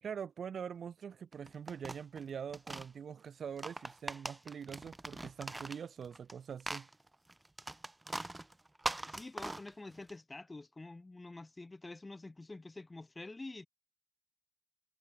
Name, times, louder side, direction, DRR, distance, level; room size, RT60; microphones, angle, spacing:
voice 1, 0.0-6.9, right 7 dB, 50° right, 2.9 m, -44 dB
sound 1, 1.3-2.9 3.5-6.3 6.6-10.1, right 2 dB, 15° right, 2.5 m, -42 dB
voice 2, 9.0-13.7, left 2 dB, 20° left, 3.5 m, -47 dB
cardioid pair, 90°, 0 cm